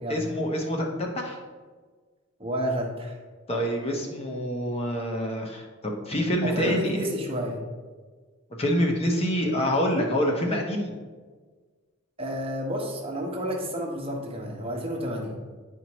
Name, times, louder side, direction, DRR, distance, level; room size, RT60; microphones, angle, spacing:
voice 1, 0.1-1.4 3.5-7.1 8.6-11.0, equal, 30° left, 0 dB, 0.9 m, -26 dB
voice 2, 2.4-3.2 6.4-7.6 12.2-15.4, equal, 30° right, -1 dB, 1.1 m, -30 dB
9.6 x 4.4 x 3.0 m, 1.4 s
head